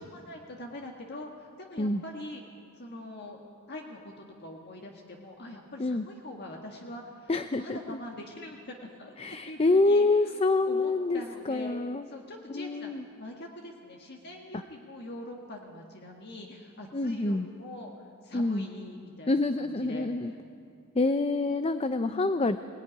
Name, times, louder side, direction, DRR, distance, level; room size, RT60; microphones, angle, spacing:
voice 1, 0.0-2.4 2.8-3.4 3.7-10.3 10.7-11.8 12.1-17.9 18.2-20.4 22.1-22.4, left 1 dB, 50° left, 1 dB, 1.7 m, -43 dB
voice 2, 7.3-8.0 9.2-12.0 12.5-13.0 16.9-17.5 18.3-18.6 19.3-20.3 21.0-22.6, left 2 dB, 30° left, 10 dB, 0.5 m, -26 dB
23.0 x 17.5 x 10.0 m, 2.5 s
head